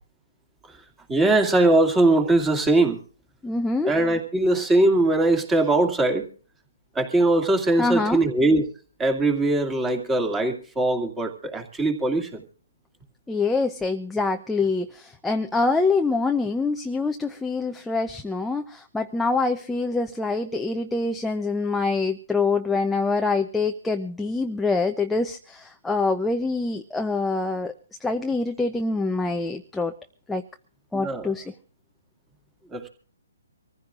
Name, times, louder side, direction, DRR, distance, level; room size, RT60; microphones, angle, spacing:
voice 1, 1.1-3.0 3.8-6.3 6.9-8.6 9.0-12.4 30.9-31.3 32.7-32.9, right 2 dB, 10° right, 5 dB, 2.3 m, -21 dB
voice 2, 3.4-3.9 7.8-8.2 13.3-27.7 28.0-29.9 30.3-30.4 30.9-31.5, left 3 dB, 5° left, 4 dB, 0.7 m, -25 dB
25.0 x 15.0 x 2.5 m, 0.41 s
hypercardioid pair, 150°, 0 cm